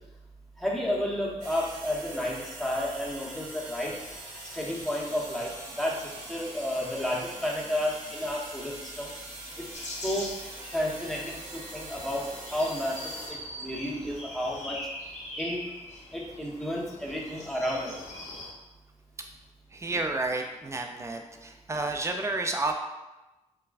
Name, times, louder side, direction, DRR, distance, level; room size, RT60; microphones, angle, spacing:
voice 1, 0.6-4.0 4.4-5.5 5.8-9.1 9.6-9.7 10.0-10.3 10.7-14.8 15.4-15.7 16.1-18.0, left 1 dB, ahead, -4 dB, 0.7 m, -31 dB
sound 1, 1.4-13.3, right 1 dB, 80° right, 1.1 m, -43 dB
sound 2, 9.7-18.5, left 1 dB, 60° left, 0.7 m, -42 dB
voice 2, 19.7-22.7, right 2 dB, 20° right, 3 dB, 0.4 m, -31 dB
3.0 x 2.3 x 2.4 m, 1.0 s
cardioid pair, 60°, 13 cm